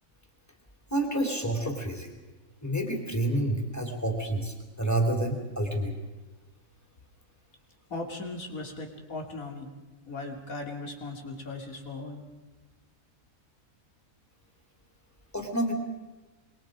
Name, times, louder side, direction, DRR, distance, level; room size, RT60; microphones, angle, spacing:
voice 1, 0.9-2.1 2.6-5.9 15.3-15.7, right 1 dB, 10° left, 2 dB, 3.4 m, -29 dB
voice 2, 7.9-9.7 10.1-12.2, left 2 dB, 75° left, 2 dB, 3.3 m, -38 dB
26.5 x 23.0 x 5.0 m, 1.2 s
omnidirectional pair, 1.5 m